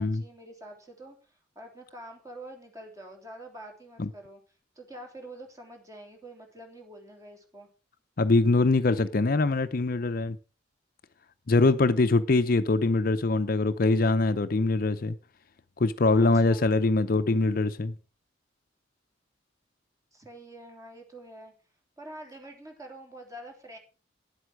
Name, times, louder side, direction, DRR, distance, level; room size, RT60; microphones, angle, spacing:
voice 1, 0.0-4.4 4.7-7.7 16.2-16.7 20.1-21.5 22.0-23.8, right 1 dB, 20° right, 3.2 m, -46 dB
voice 2, 8.2-10.4 11.5-15.2 15.8-17.9, left 3 dB, 50° left, 0.6 m, -23 dB
10.5 x 8.0 x 6.3 m
head